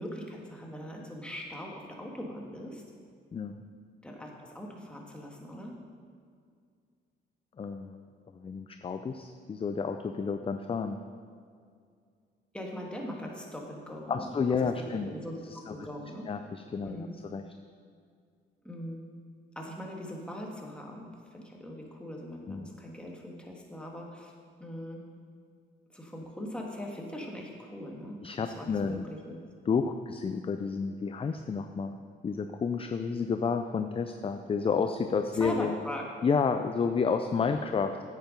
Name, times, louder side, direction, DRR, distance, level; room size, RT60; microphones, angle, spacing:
voice 1, 0.0-2.8 4.0-5.7 12.5-14.3 14.9-15.4 15.7-16.3 16.8-17.1 18.6-19.0 19.6-24.3 24.6-25.0 25.9-28.2 28.6-29.0 29.3-29.4 35.4-36.0, equal, 5° left, -1 dB, 1.8 m, -40 dB
voice 2, 7.6-8.1 8.3-11.0 14.1-15.1 15.7-15.9 16.2-17.4 22.5-22.7 28.2-29.1 29.7-32.0 32.2-35.7 36.2-38.0, left 5 dB, 30° left, 8 dB, 0.5 m, -30 dB
9.2 x 8.0 x 5.2 m, 2.2 s
cardioid pair, 90°, 20 cm